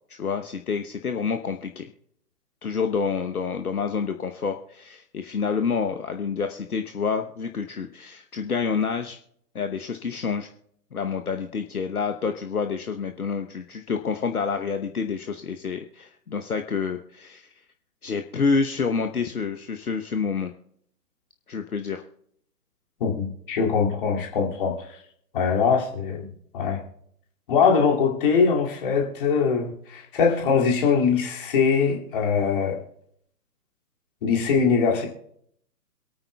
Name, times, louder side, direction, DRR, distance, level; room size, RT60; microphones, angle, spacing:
voice 1, 0.1-1.9 2.6-9.2 9.5-10.5 10.9-17.5 18.0-20.5 21.5-22.0, left 5 dB, 65° left, 6 dB, 1.0 m, -28 dB
voice 2, 23.0-24.8 25.3-26.3 26.5-26.8 27.5-32.8 34.2-35.1, left 6 dB, 35° left, -1 dB, 2.4 m, -22 dB
26.5 x 8.9 x 2.3 m, 0.67 s
figure-of-eight pair, 130°, 47 cm